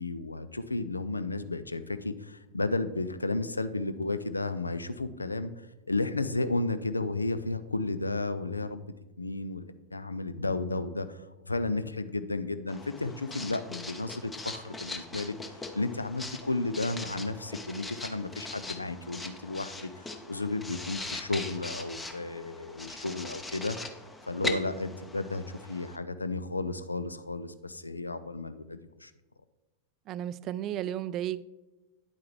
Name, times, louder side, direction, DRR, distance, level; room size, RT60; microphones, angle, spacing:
voice 1, 0.0-5.5 5.9-8.9 9.2-15.3 15.7-23.8 24.3-29.1, left 2 dB, 80° left, 13 dB, 0.4 m, -33 dB
Writing, 12.7-26.0, left 2 dB, 10° left, 0.7 m, -41 dB
voice 2, 30.1-31.4, right 11 dB, 35° right, 17 dB, 0.3 m, -33 dB
9.7 x 8.3 x 3.2 m, 1.1 s
figure-of-eight pair, 90°, 0 cm